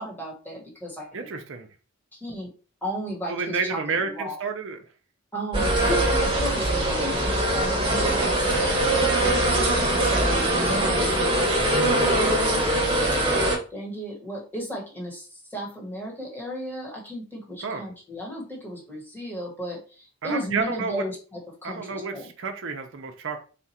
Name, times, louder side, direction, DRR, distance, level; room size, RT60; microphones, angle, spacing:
voice 1, 0.0-1.2 2.1-2.5 2.8-4.4 5.3-9.3 9.9-13.0 13.7-22.3, equal, 10° left, -3 dB, 1.2 m, -35 dB
voice 2, 1.1-1.7 3.3-4.8 10.1-10.5 17.6-17.8 20.2-21.0 21.6-23.4, right 4 dB, 55° right, 4 dB, 0.7 m, -30 dB
sound 1, 5.5-13.6, right 1 dB, 20° right, 1.4 m, -22 dB
4.1 x 2.5 x 4.2 m, 0.36 s
head